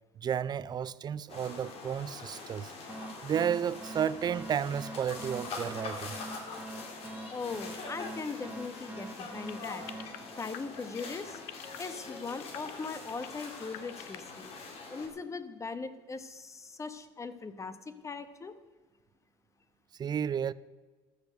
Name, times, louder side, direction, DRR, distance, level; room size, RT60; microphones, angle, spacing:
voice 1, 0.2-2.7 3.2-6.2 20.0-20.5, right 8 dB, 40° right, 0.5 m, -32 dB
sound 1, 1.3-15.1, left 4 dB, 65° left, 2.5 m, -44 dB
sound 2, 2.9-11.2, right 2 dB, 10° right, 1.0 m, -45 dB
voice 2, 7.3-9.9 10.4-11.4 11.8-14.5 14.9-18.5, left 4 dB, 25° left, 1.1 m, -40 dB
sound 3, 9.5-14.4, left 15 dB, 85° left, 0.7 m, -45 dB
13.0 x 6.8 x 6.4 m
supercardioid pair, 85°, 11 cm